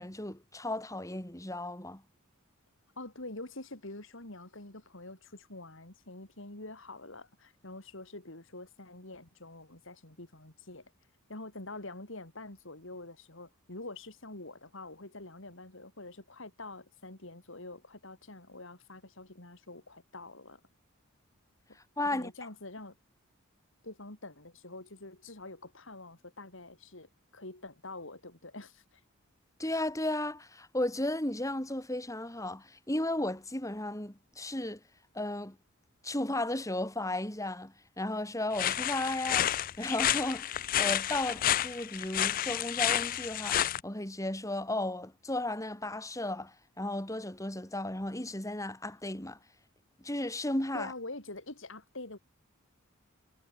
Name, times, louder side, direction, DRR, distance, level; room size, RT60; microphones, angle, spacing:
voice 1, 0.0-2.0 22.0-22.3 29.6-34.8 35.1-35.6 36.0-39.5 39.8-49.4 50.0-50.9, left 1 dB, 15° left, 3.0 m, -34 dB
voice 2, 3.0-10.9 11.3-20.6 22.0-23.0 23.8-29.0 50.7-52.2, left 2 dB, 60° left, 3.7 m, -46 dB
sound 1, 38.5-43.8, left 11 dB, 40° left, 0.4 m, -30 dB
head